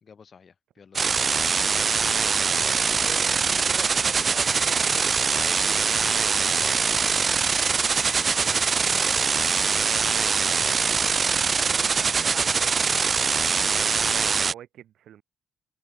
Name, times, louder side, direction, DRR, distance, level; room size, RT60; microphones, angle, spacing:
voice 1, 0.0-1.2 8.3-9.2, left 6 dB, 45° left, 3.0 m, -51 dB
sound 1, 0.9-14.5, right 5 dB, 40° right, 0.5 m, -23 dB
voice 2, 3.0-7.4 8.3-12.9 13.4-15.2, right 11 dB, 70° right, 2.4 m, -44 dB
Alarm, 4.4-10.1, equal, 5° right, 2.1 m, -41 dB
open air
cardioid pair, 90°, 0 cm